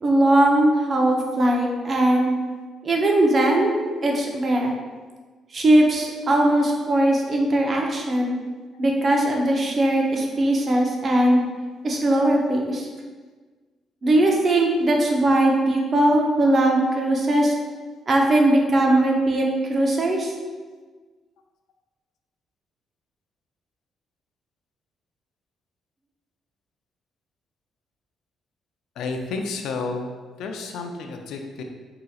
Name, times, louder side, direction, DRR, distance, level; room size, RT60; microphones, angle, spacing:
voice 1, 0.0-2.3 2.8-4.8 5.5-8.3 8.8-11.4 11.8-12.9 14.0-17.5 18.1-20.3, right 1 dB, 40° right, 0 dB, 0.7 m, -20 dB
voice 2, 29.0-30.1 30.4-31.6, left 3 dB, 80° left, 4 dB, 0.4 m, -31 dB
4.7 x 2.8 x 2.3 m, 1.4 s
cardioid pair, 90°, 0 cm